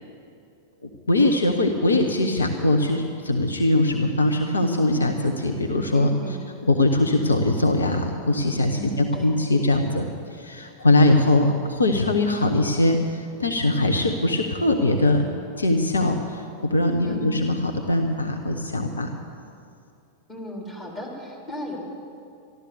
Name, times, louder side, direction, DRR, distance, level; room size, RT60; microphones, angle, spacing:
voice 1, 0.8-6.1 6.6-10.0 10.3-15.2 15.6-19.1, left 2 dB, 75° left, 4 dB, 0.9 m, -21 dB
voice 2, 5.9-6.4 8.7-9.3 17.0-17.2 20.3-21.8, equal, 20° left, -3 dB, 4.1 m, -36 dB
13.5 x 12.5 x 7.1 m, 2.5 s
figure-of-eight pair, 90°, 0 cm